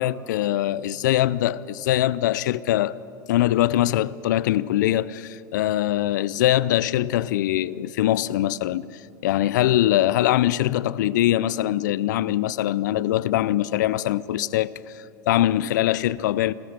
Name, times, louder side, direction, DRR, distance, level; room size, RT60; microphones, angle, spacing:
voice 1, 0.0-3.0 3.3-16.5, left 13 dB, 75° left, 0.5 m, -22 dB
28.0 x 14.5 x 6.7 m
hypercardioid pair, 90°, 10 cm